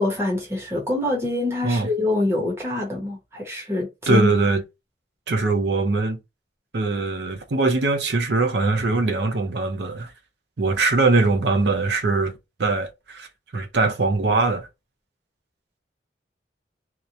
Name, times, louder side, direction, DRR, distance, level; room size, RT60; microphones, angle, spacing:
voice 1, 0.0-4.3, left 2 dB, 15° right, 0.8 m, -25 dB
voice 2, 4.1-4.6 5.3-6.2 6.7-10.1 10.6-12.3 12.6-13.3 13.5-14.7, right 3 dB, 70° right, 0.6 m, -21 dB
2.9 x 2.1 x 2.4 m
head